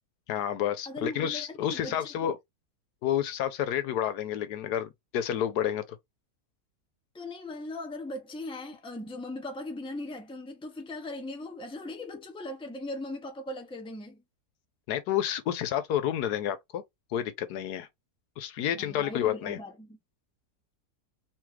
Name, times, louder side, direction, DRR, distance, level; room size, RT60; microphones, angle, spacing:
voice 1, 0.3-2.4 3.0-5.8 14.9-16.8 17.1-17.9 18.4-19.6, left 10 dB, 85° left, 1.2 m, -30 dB
voice 2, 0.9-2.1 7.1-14.2 18.7-20.0, left 2 dB, 5° left, 0.6 m, -39 dB
3.6 x 3.1 x 3.1 m
omnidirectional pair, 1.7 m